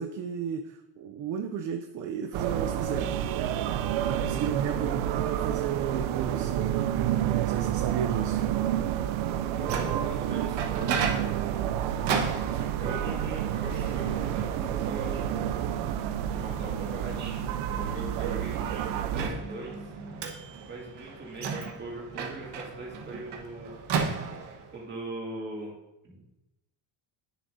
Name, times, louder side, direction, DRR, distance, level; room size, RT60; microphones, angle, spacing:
voice 1, 0.0-3.2 4.1-6.8 7.2-8.4, right 8 dB, 45° right, 6 dB, 0.4 m, -33 dB
sound 1, 2.3-19.3, right 11 dB, 90° right, 0.6 m, -29 dB
voice 2, 4.7-5.2 9.5-10.9 12.2-15.5 16.3-17.4 17.7-19.8 20.6-23.7 24.7-25.7 26.0-26.3, right 2 dB, 25° right, -4 dB, 2.2 m, -40 dB
Microwave oven, 9.5-24.8, right 5 dB, 60° right, 1.3 m, -36 dB
9.8 x 7.2 x 2.7 m, 0.94 s
cardioid pair, 160°, 46 cm